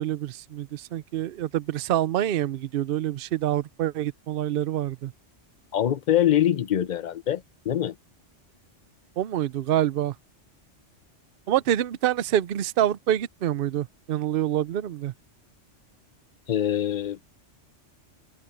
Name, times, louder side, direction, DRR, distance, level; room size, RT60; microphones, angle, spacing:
voice 1, 0.0-5.1 9.2-10.1 11.5-15.1, right 12 dB, 60° right, 0.7 m, -26 dB
voice 2, 5.7-7.9 16.5-17.2, left 11 dB, 45° left, 0.7 m, -24 dB
open air
omnidirectional pair, 1.2 m